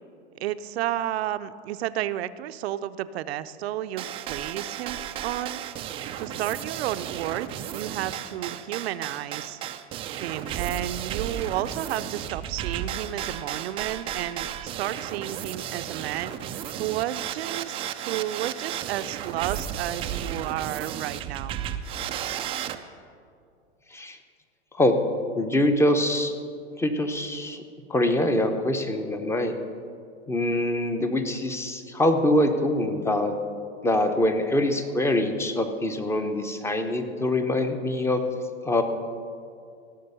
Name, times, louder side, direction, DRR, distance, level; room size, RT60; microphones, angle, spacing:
voice 1, 0.4-5.6 6.2-9.6 10.2-16.3 16.8-21.6, right 13 dB, 60° right, 13 dB, 0.6 m, -32 dB
sound 1, 4.0-22.8, right 10 dB, 15° right, 0.3 m, -34 dB
voice 2, 25.4-26.3 26.8-27.6 27.9-29.5 30.3-33.3 33.8-38.2 38.6-38.8, left 1 dB, 10° left, 7 dB, 0.7 m, -24 dB
16.5 x 6.4 x 6.8 m, 2.4 s
hypercardioid pair, 125°, 35 cm